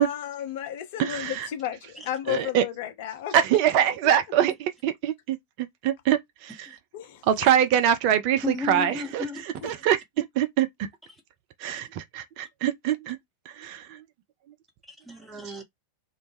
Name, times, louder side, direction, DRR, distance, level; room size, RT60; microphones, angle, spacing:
voice 1, 0.0-3.3 6.9-7.2 9.6-9.7, left 11 dB, 50° left, 0.5 m, -33 dB
voice 2, 1.0-1.5 2.3-2.6 3.3-5.4 5.8-6.5 7.3-9.2 9.6-10.7 11.6-13.2 13.6-13.8, right 10 dB, 45° right, 0.3 m, -23 dB
voice 3, 8.4-9.6 14.9-15.6, left 4 dB, 5° right, 0.8 m, -34 dB
2.1 x 2.0 x 3.1 m
figure-of-eight pair, 90°, 0 cm